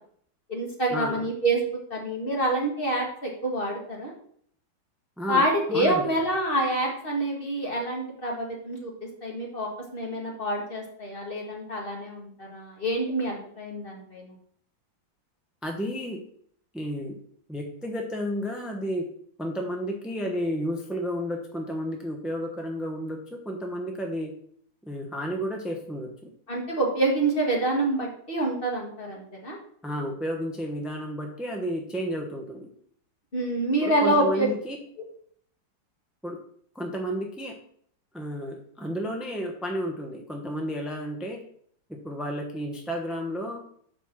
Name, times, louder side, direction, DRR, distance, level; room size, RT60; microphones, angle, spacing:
voice 1, 0.5-1.6 1.9-4.1 5.3-8.9 9.2-14.3 26.5-29.6 33.3-34.5, right 1 dB, 30° left, -1 dB, 1.8 m, -27 dB
voice 2, 5.2-6.1 15.6-16.2 16.7-17.2 17.5-19.1 19.4-24.3 24.8-26.3 29.8-32.7 33.8-34.8 36.2-36.4 36.7-37.5 38.1-41.4 41.9-43.6, equal, ahead, 2 dB, 0.4 m, -32 dB
6.3 x 5.1 x 5.9 m, 0.63 s
omnidirectional pair, 2.0 m